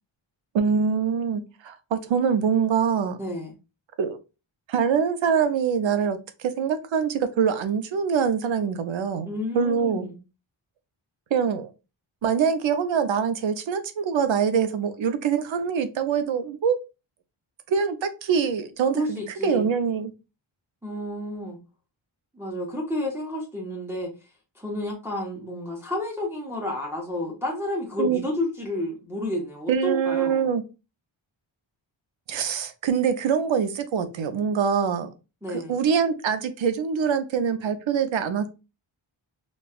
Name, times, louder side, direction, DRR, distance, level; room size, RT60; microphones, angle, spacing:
voice 1, 0.5-3.2 4.0-4.2 4.7-9.3 9.5-10.1 11.3-11.7 12.2-16.8 17.7-20.1 28.0-28.2 29.7-30.6 32.3-35.1 35.5-38.5, right 6 dB, 70° right, 9 dB, 0.6 m, -24 dB
voice 2, 3.2-3.5 9.3-10.2 18.9-19.7 20.8-21.6 22.3-24.1 24.6-30.5 35.4-35.8, left 1 dB, 5° right, -2 dB, 0.6 m, -31 dB
4.2 x 2.3 x 2.3 m, 0.28 s
wide cardioid pair, 160°, 49 cm